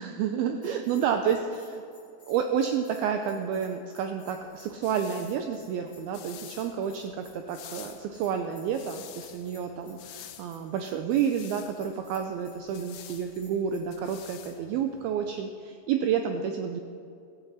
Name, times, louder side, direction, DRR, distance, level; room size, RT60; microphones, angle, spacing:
voice 1, 0.0-1.8 2.3-16.8, right 7 dB, 80° right, 5 dB, 2.3 m, -30 dB
Bell, 0.6-13.8, left 3 dB, 30° left, 4.1 m, -57 dB
sound 1, 4.4-15.4, left 11 dB, 80° left, 2.9 m, -50 dB
16.5 x 15.0 x 4.2 m, 2.5 s
omnidirectional pair, 5.0 m